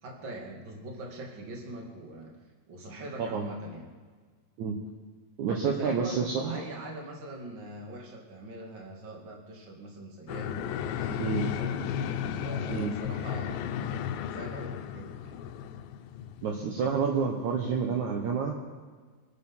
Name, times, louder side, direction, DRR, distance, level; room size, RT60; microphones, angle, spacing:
voice 1, 0.0-3.9 5.6-11.8 12.4-13.8 14.3-15.3, right 1 dB, 35° right, 0 dB, 2.8 m, -42 dB
voice 2, 5.4-6.6 11.2-11.4 12.7-12.9 16.4-18.7, right 5 dB, 65° right, 0 dB, 2.4 m, -29 dB
sound 1, 10.3-17.4, left 8 dB, 85° left, 2.4 m, -34 dB
25.5 x 9.3 x 5.6 m, 1.5 s
omnidirectional pair, 4.0 m